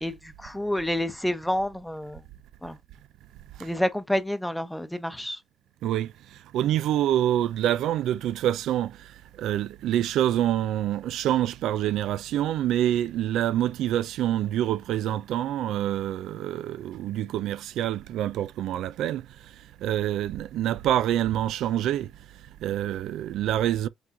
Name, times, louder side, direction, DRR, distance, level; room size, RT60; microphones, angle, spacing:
voice 1, 0.0-2.2 2.6-2.8 3.6-5.4, left 1 dB, 5° left, 0.8 m, -29 dB
voice 2, 5.8-9.1 9.4-19.3 19.8-22.1 22.6-23.9, right 12 dB, 85° right, 0.3 m, -26 dB
4.6 x 3.8 x 2.6 m
cardioid pair, 90°, 0 cm